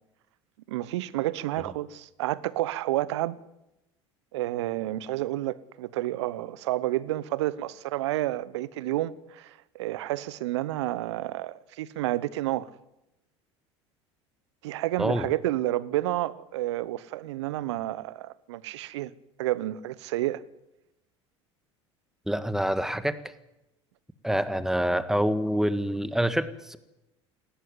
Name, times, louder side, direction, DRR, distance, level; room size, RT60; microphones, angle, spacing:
voice 1, 0.7-3.4 4.3-12.7 14.6-19.1 19.4-20.4, right 15 dB, 70° right, 0.9 m, -30 dB
voice 2, 22.3-23.2 24.2-26.8, equal, 5° right, 1.6 m, -26 dB
18.5 x 17.0 x 9.6 m
hypercardioid pair, 70°, 15 cm